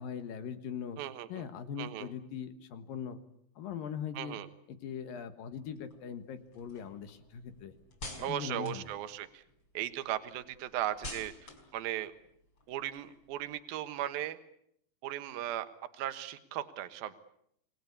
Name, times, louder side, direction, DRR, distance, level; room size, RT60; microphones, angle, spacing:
voice 1, 0.0-1.0 1.3-3.2 3.6-4.4 4.7-7.7 8.3-8.9, left 7 dB, 65° left, 9 dB, 3.0 m, -40 dB
voice 2, 1.0-1.4 1.8-2.1 4.1-4.5 8.2-9.4 9.7-11.3 11.7-12.1 12.7-14.4 15.0-15.7 15.9-17.1, right 13 dB, 70° right, 10 dB, 3.0 m, -37 dB
sound 1, 5.5-9.7 10.0-13.5, left 1 dB, 30° left, 5.6 m, -50 dB
28.0 x 21.0 x 8.5 m, 0.72 s
omnidirectional pair, 4.8 m